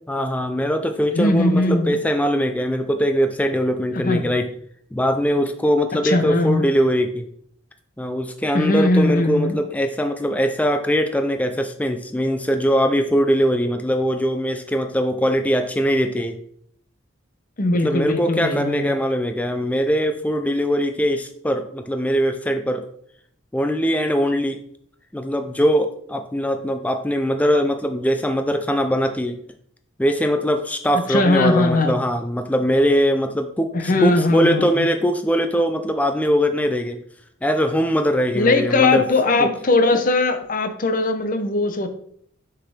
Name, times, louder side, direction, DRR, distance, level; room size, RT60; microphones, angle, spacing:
voice 1, 0.1-4.5 4.9-7.3 8.0-16.4 17.8-22.9 23.5-24.6 25.1-29.4 30.0-37.0 37.4-39.0 39.4-39.5, equal, 5° left, 6 dB, 0.4 m, -21 dB
voice 2, 1.1-2.0 3.9-4.3 5.9-6.7 8.5-9.6 17.6-18.9 31.1-31.9 33.7-34.9 38.3-41.9, left 2 dB, 45° left, 7 dB, 0.7 m, -19 dB
6.7 x 4.6 x 3.6 m, 0.65 s
head